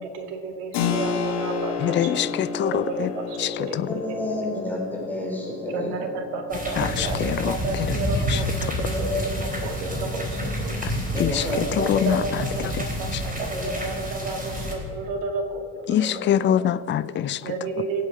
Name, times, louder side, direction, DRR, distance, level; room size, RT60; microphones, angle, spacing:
voice 1, 0.0-2.1 2.6-4.2 4.6-4.7 5.7-10.7 11.5-16.5 17.4-18.1, right 3 dB, 65° right, 5 dB, 2.1 m, -32 dB
Keyboard (musical), 0.7-11.1, left 6 dB, 55° left, 2.0 m, -33 dB
voice 2, 1.8-3.1 3.4-3.9 6.8-8.0 8.3-8.4 10.8-10.9 11.2-11.5 11.8-12.2 12.6-12.7 15.9-17.4, left 10 dB, 25° left, 16 dB, 0.4 m, -24 dB
voice 3, 3.9-6.0 8.9-9.2 11.1-11.9 13.5-13.6 16.0-16.6, left 2 dB, 5° left, -3 dB, 4.5 m, -30 dB
sound 1, 6.5-14.7, equal, 15° right, 3.9 m, -29 dB
23.0 x 8.2 x 5.0 m, 2.3 s
hypercardioid pair, 70°, 49 cm